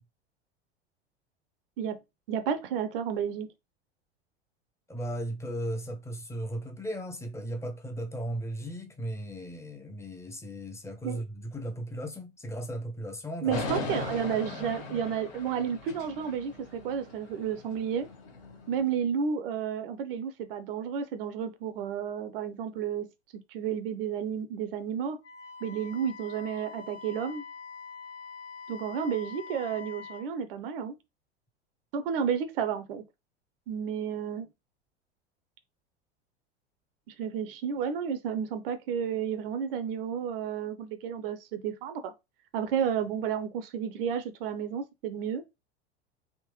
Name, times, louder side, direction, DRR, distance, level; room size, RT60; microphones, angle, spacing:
voice 1, 2.3-3.5 11.0-11.2 13.4-18.1 18.7-23.1 23.5-25.2 25.6-27.4 28.7-31.0 31.9-33.0 33.7-34.5 37.1-42.1 42.5-45.4, right 7 dB, 55° right, 0.7 m, -31 dB
voice 2, 4.9-13.6, right 1 dB, 10° left, 0.9 m, -36 dB
sound 1, 13.5-18.9, left 3 dB, 50° left, 1.6 m, -39 dB
Wind instrument woodwind instrument, 25.2-30.3, left 5 dB, 75° left, 1.5 m, -45 dB
3.5 x 2.8 x 3.0 m
figure-of-eight pair, 85°, 34 cm